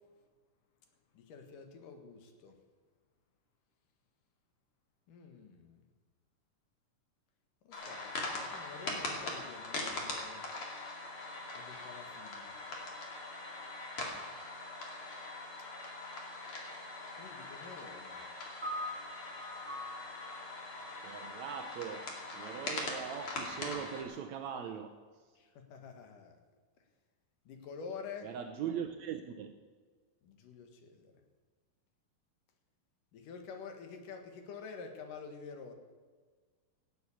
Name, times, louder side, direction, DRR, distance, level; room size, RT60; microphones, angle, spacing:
voice 1, 1.1-2.6 5.1-5.8 7.6-10.4 11.5-12.5 17.2-18.2 25.4-26.4 27.5-28.3 30.2-31.1 33.1-35.7, left 5 dB, 75° left, 3.1 m, -48 dB
sound 1, 7.7-24.0, left 2 dB, 40° left, 3.1 m, -42 dB
sound 2, 18.6-25.1, left 1 dB, 15° right, 4.4 m, -47 dB
voice 2, 21.0-25.0 28.2-29.6, right 8 dB, 75° right, 1.8 m, -41 dB
17.0 x 7.9 x 8.4 m
omnidirectional pair, 3.9 m